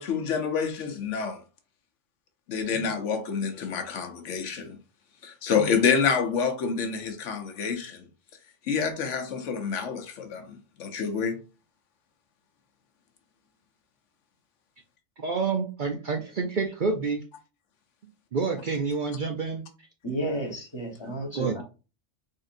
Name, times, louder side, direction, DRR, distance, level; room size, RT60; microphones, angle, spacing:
voice 1, 0.0-1.4 2.5-4.8 5.2-8.1 8.7-11.4, left 6 dB, 75° left, 1.0 m, -28 dB
voice 2, 15.2-17.2 18.3-19.7 21.3-21.6, right 4 dB, 55° right, 0.6 m, -28 dB
voice 3, 20.0-21.6, right 1 dB, 25° left, 1.1 m, -32 dB
3.6 x 3.6 x 2.5 m
omnidirectional pair, 1.3 m